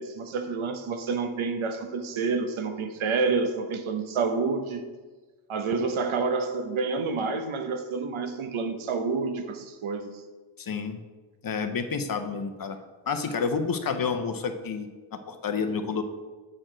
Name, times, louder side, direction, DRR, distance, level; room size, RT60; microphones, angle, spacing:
voice 1, 0.0-4.8 5.5-10.1, right 4 dB, 75° right, 0.8 m, -28 dB
voice 2, 10.6-11.0 11.4-12.8 13.1-16.0, left 5 dB, 45° left, 0.6 m, -29 dB
7.5 x 4.5 x 4.9 m
wide cardioid pair, 160°, 48 cm